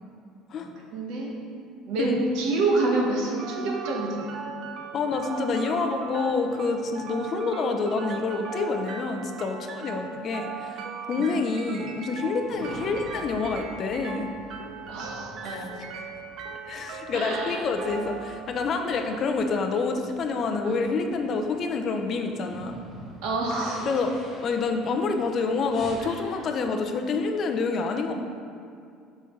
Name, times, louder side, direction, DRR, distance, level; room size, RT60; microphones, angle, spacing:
voice 1, 0.5-1.3 1.9-4.2 11.2-11.3 12.6-12.7 14.9-15.8 17.1-17.7 18.9-19.0 20.6-20.8 23.2-23.8 26.0-26.2, right 3 dB, 70° right, -1 dB, 1.1 m, -28 dB
sound 1, 3.4-19.4, right 5 dB, 55° right, 0.5 m, -39 dB
voice 2, 4.9-14.3 15.4-15.7 16.7-22.8 23.9-24.1 24.4-28.1, left 4 dB, 40° left, 4 dB, 0.5 m, -27 dB
sound 2, 12.4-25.9, left 1 dB, 25° left, 1.4 m, -48 dB
6.9 x 4.1 x 3.7 m, 2.3 s
cardioid pair, 135°, 0 cm